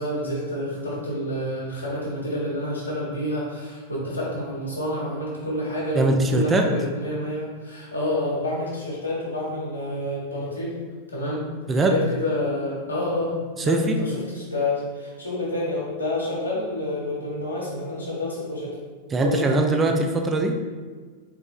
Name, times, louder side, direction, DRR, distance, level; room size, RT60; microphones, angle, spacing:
voice 1, 0.0-10.7 11.1-11.5 11.7-18.8 19.2-19.6, left 1 dB, 80° left, -6 dB, 1.5 m, -28 dB
voice 2, 5.9-6.7 11.7-12.0 13.6-14.0 19.1-20.6, right 2 dB, 20° right, 4 dB, 0.4 m, -21 dB
4.7 x 4.3 x 2.5 m, 1.5 s
figure-of-eight pair, 90°, 0 cm